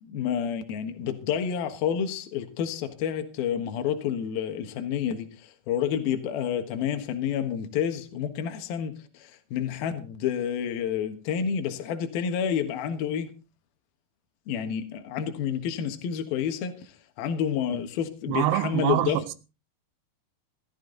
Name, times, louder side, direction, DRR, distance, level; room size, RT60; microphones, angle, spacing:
voice 1, 0.0-13.3 14.5-19.2, left 8 dB, 65° left, 3.2 m, -29 dB
voice 2, 18.3-19.3, right 15 dB, 80° right, 3.1 m, -26 dB
17.5 x 13.0 x 3.9 m
omnidirectional pair, 4.8 m